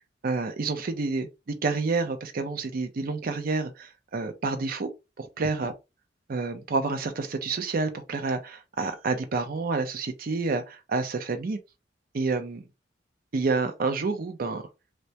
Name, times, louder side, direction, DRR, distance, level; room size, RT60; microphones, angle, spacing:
voice 1, 0.2-4.9 5.2-5.7 6.3-11.6 12.1-12.6 13.3-14.7, right 3 dB, 55° right, 0.5 m, -29 dB
2.1 x 2.1 x 2.7 m
head